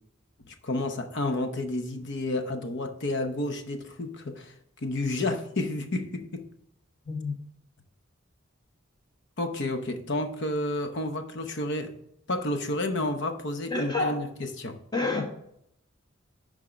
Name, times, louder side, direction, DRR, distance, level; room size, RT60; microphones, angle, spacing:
voice 1, 0.5-4.5 4.8-6.5 9.4-11.9 12.3-14.8, left 2 dB, 60° left, 7 dB, 0.8 m, -30 dB
voice 2, 13.7-14.3 14.9-15.3, left 3 dB, 20° left, 1 dB, 1.3 m, -28 dB
11.0 x 3.7 x 5.0 m, 0.74 s
head